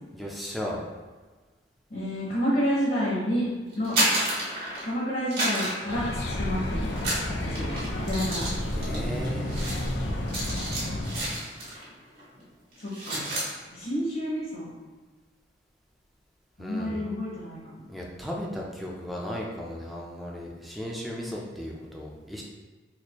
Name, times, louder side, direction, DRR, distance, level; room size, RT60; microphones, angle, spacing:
voice 1, 0.1-0.8 8.7-10.1 16.6-17.0 17.9-22.4, equal, ahead, -3 dB, 0.5 m, -35 dB
voice 2, 1.9-3.5 3.7-4.0 4.8-6.8 7.4-7.7 8.0-8.4 8.9-9.5 12.8-13.3 13.7-14.7 16.6-17.8, equal, 50° left, -6 dB, 0.9 m, -29 dB
sound 1, 3.7-5.0 5.3-6.6 6.9-11.9 12.2-12.4 12.7-13.5, right 1 dB, 55° right, 1.5 m, -31 dB
sound 2, 5.9-11.3, left 1 dB, 80° left, 0.5 m, -31 dB
4.1 x 2.6 x 3.0 m, 1.3 s
head